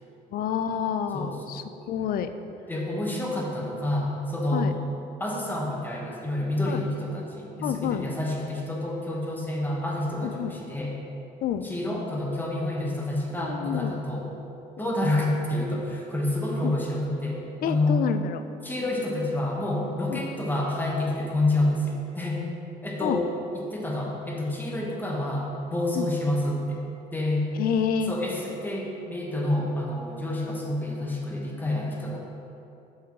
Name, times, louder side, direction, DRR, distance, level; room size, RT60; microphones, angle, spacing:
voice 1, 0.3-2.3 4.5-4.7 6.7-6.8 7.6-8.1 10.2-10.5 11.4-11.7 13.4-14.0 14.8-14.9 16.6-16.8 17.6-18.4 20.1-20.2 23.0-23.2 25.9-26.1 27.6-28.2, left 9 dB, 60° left, 9 dB, 0.4 m, -28 dB
voice 2, 2.7-4.7 5.2-10.9 11.6-14.3 14.8-18.0 18.6-22.4 22.8-23.2 23.5-26.8 27.1-27.5 28.1-32.2, left 1 dB, 10° left, -2 dB, 1.1 m, -28 dB
7.0 x 3.7 x 4.8 m, 2.9 s
cardioid pair, 110°, 17 cm